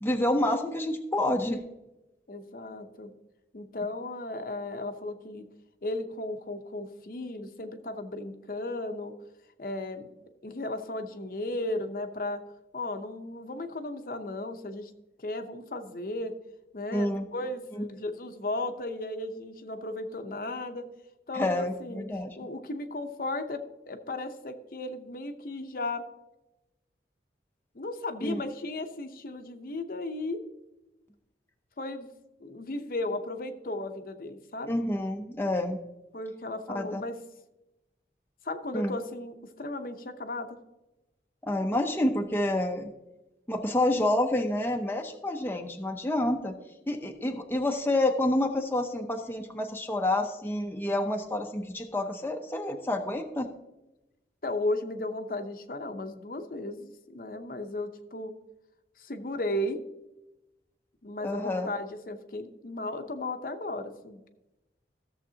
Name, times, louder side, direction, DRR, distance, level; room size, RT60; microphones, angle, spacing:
voice 1, 0.0-1.6 16.9-17.3 17.8-17.9 21.3-22.4 28.2-28.4 34.7-35.8 36.7-37.0 38.7-38.9 41.4-42.9 43.5-46.5 46.9-53.5 61.2-61.7, left 1 dB, 10° left, 3 dB, 0.6 m, -28 dB
voice 2, 2.3-3.1 3.5-5.5 5.8-9.1 9.6-10.1 10.4-12.4 12.7-14.9 15.2-16.4 16.7-20.8 21.3-22.0 22.4-26.0 27.7-30.4 31.8-32.1 32.4-34.7 36.1-37.2 38.4-40.6 54.4-58.3 59.0-59.8 61.0-64.2, left 2 dB, 50° left, 7 dB, 0.7 m, -35 dB
14.5 x 7.2 x 2.8 m, 0.96 s
head